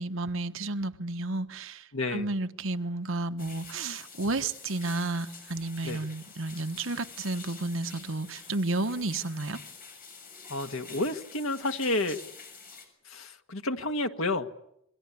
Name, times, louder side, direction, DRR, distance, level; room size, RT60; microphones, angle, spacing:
voice 1, 0.0-9.6, right 2 dB, 65° right, 1.3 m, -32 dB
voice 2, 1.9-2.3 5.8-6.0 10.5-12.2 13.1-14.5, left 2 dB, 75° left, 1.9 m, -30 dB
sound 1, 3.4-12.9, left 5 dB, 45° left, 7.3 m, -47 dB
28.5 x 23.0 x 8.6 m
head